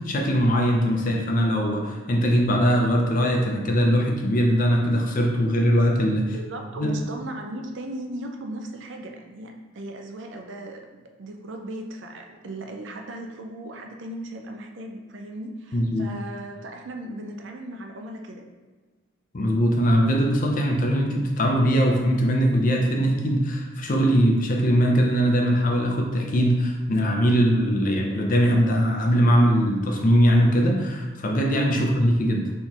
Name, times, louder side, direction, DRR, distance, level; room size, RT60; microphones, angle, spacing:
voice 1, 0.0-6.3 6.8-6.9 15.7-16.1 19.3-32.5, equal, 40° left, 1 dB, 0.6 m, -21 dB
voice 2, 6.2-18.4 31.7-31.9, right 1 dB, 60° right, 3 dB, 0.5 m, -37 dB
4.2 x 3.6 x 3.0 m, 1.3 s
head